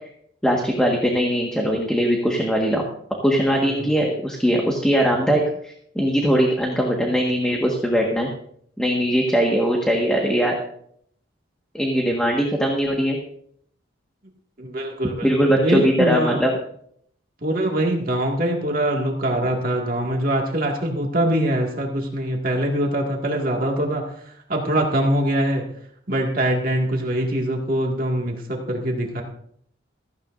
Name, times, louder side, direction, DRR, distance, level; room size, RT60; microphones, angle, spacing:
voice 1, 0.4-2.9 3.2-8.3 8.8-10.5 11.7-13.2 15.2-16.5, equal, 5° left, -1 dB, 1.6 m, -20 dB
voice 2, 3.5-3.9 14.6-16.4 17.4-25.7 26.1-29.2, right 1 dB, 45° right, 0 dB, 2.1 m, -23 dB
16.0 x 15.0 x 2.6 m, 0.65 s
head